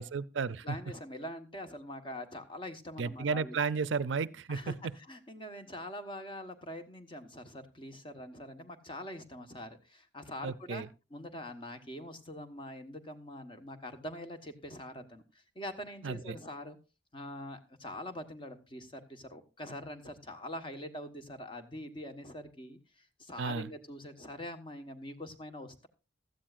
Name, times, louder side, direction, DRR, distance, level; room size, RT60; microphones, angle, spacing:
voice 1, 0.0-0.8 3.0-4.8 10.4-10.9 16.0-16.4 23.4-23.7, right 5 dB, 75° right, 0.5 m, -33 dB
voice 2, 0.6-3.5 4.5-10.8 11.1-16.8 17.1-25.9, left 1 dB, 30° left, 1.3 m, -44 dB
16.0 x 13.0 x 2.5 m
head